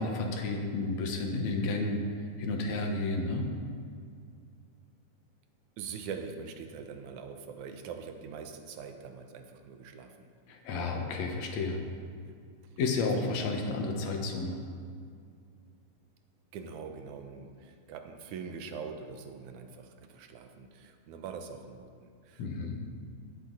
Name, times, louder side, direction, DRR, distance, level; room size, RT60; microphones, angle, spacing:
voice 1, 0.0-2.0 2.4-3.5 10.5-11.8 12.8-14.6 22.4-22.8, left 3 dB, 70° left, 3 dB, 2.4 m, -31 dB
voice 2, 5.8-10.3 12.2-12.4 16.5-22.7, right 6 dB, 85° right, 5 dB, 2.3 m, -43 dB
18.0 x 8.1 x 4.0 m, 2.3 s
omnidirectional pair, 3.4 m